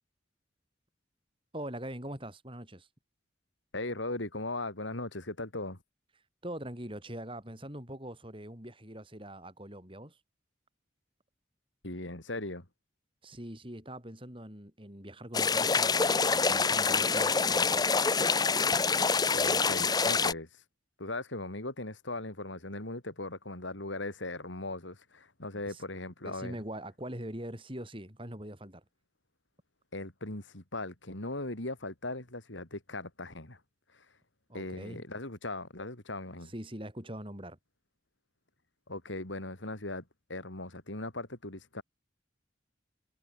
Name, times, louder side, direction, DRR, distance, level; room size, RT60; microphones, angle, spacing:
voice 1, 1.5-2.9 6.4-10.2 13.2-17.9 25.6-25.8 26.2-28.8 34.5-35.0 36.4-37.6, right 1 dB, 25° right, 7.6 m, -42 dB
voice 2, 3.7-5.8 11.8-12.7 19.3-20.5 21.0-26.6 29.9-33.6 33.9-34.1 34.5-36.5 38.9-40.0 40.3-41.8, left 2 dB, 75° left, 4.0 m, -38 dB
sound 1, 15.3-20.3, left 4 dB, 20° left, 0.7 m, -26 dB
head